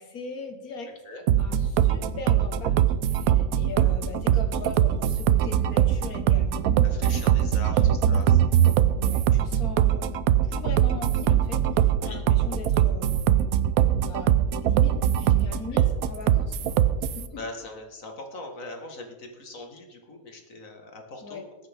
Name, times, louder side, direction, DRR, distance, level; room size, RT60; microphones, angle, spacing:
voice 1, 0.0-0.9 1.4-2.8 3.0-7.2 7.6-8.5 8.9-10.1 10.4-13.5 14.0-16.8 17.2-17.4 21.2-21.4, left 3 dB, 85° left, 5 dB, 2.0 m, -40 dB
sound 1, 1.3-17.3, right 10 dB, 90° right, 1.1 m, -22 dB
voice 2, 6.8-8.3 12.0-12.2 15.7-15.8 17.3-21.4, left 2 dB, 65° left, 3 dB, 2.2 m, -41 dB
20.0 x 8.7 x 3.6 m, 1.1 s
omnidirectional pair, 1.5 m